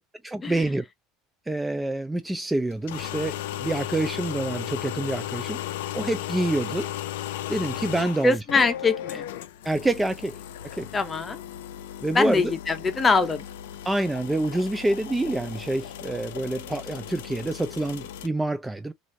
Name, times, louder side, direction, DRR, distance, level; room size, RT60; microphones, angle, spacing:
voice 1, 0.2-0.8 1.5-6.9 7.5-8.4 9.6-10.3 10.7-10.9 12.0-12.5 13.9-18.9, right 2 dB, 10° right, 0.3 m, -27 dB
sound 1, 2.7-18.3, left 12 dB, 85° left, 0.4 m, -36 dB
voice 2, 8.2-9.3 10.9-11.4 12.1-13.4, left 4 dB, 20° left, 0.7 m, -23 dB
3.0 x 2.5 x 2.6 m
supercardioid pair, 105°, 0 cm